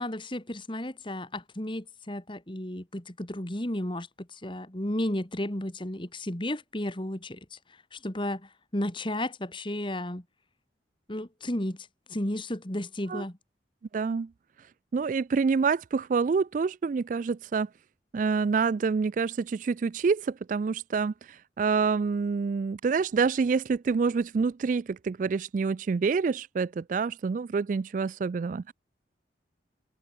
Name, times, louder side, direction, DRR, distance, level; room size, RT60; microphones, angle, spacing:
voice 1, 0.0-7.6 7.9-10.2 11.1-13.4, left 1 dB, 25° left, 2.2 m, -33 dB
voice 2, 13.9-14.3 14.9-17.7 18.1-28.7, right 5 dB, 45° right, 0.3 m, -27 dB
head